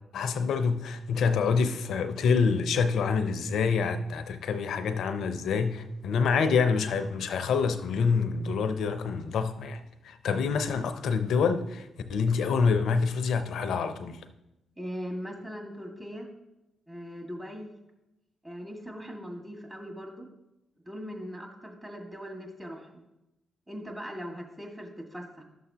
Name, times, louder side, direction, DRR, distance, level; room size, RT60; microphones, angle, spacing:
voice 1, 0.1-14.2, left 5 dB, 70° left, 0.6 m, -27 dB
voice 2, 14.8-16.3 16.9-17.7 18.4-20.3 20.9-23.0 23.7-25.4, equal, 20° right, 1.9 m, -40 dB
11.0 x 6.9 x 2.8 m
hypercardioid pair, 50°, 0 cm